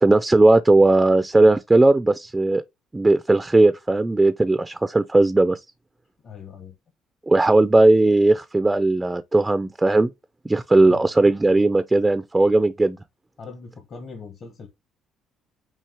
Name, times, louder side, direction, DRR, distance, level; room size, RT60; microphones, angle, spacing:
voice 1, 0.0-2.6 2.9-5.6 7.3-10.1 10.4-13.0, right 2 dB, 15° right, 0.4 m, -17 dB
voice 2, 6.2-6.7 10.7-11.1 13.4-14.7, left 5 dB, 50° left, 1.1 m, -40 dB
5.5 x 2.8 x 3.4 m
supercardioid pair, 85°, 0 cm